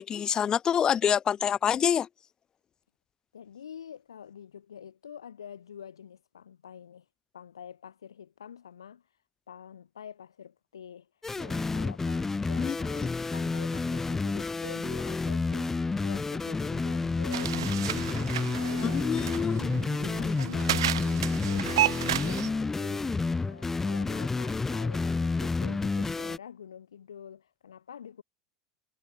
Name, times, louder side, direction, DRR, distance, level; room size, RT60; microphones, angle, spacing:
voice 1, 0.0-2.1 12.6-12.8 13.0-13.1 18.8-19.6, left 8 dB, 30° left, 1.7 m, -26 dB
voice 2, 3.3-7.1 7.3-9.0 9.5-11.1 11.4-18.2 18.6-19.6 20.0-23.2 23.4-28.2, left 8 dB, 80° left, 3.7 m, -47 dB
sound 1, 11.2-26.4, left 3 dB, 15° left, 1.1 m, -30 dB
sound 2, 17.3-22.5, right 12 dB, 70° right, 0.7 m, -32 dB
figure-of-eight pair, 85°, 3 cm